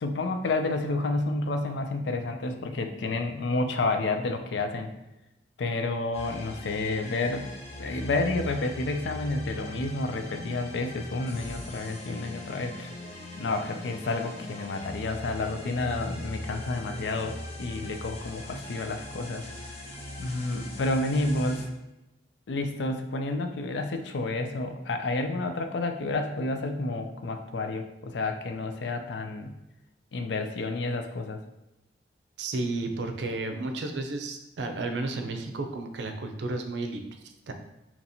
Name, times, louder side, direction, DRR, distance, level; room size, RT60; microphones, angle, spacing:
voice 1, 0.0-4.9 5.6-7.5 7.8-12.9 13.4-19.4 20.2-21.7 22.5-29.5 30.1-31.4, left 2 dB, 80° left, 6 dB, 0.4 m, -30 dB
sound 1, 6.1-21.6, left 1 dB, 35° left, 0.7 m, -40 dB
voice 2, 32.4-37.5, right 2 dB, 75° right, 6 dB, 0.5 m, -33 dB
2.9 x 2.7 x 4.2 m, 0.96 s
head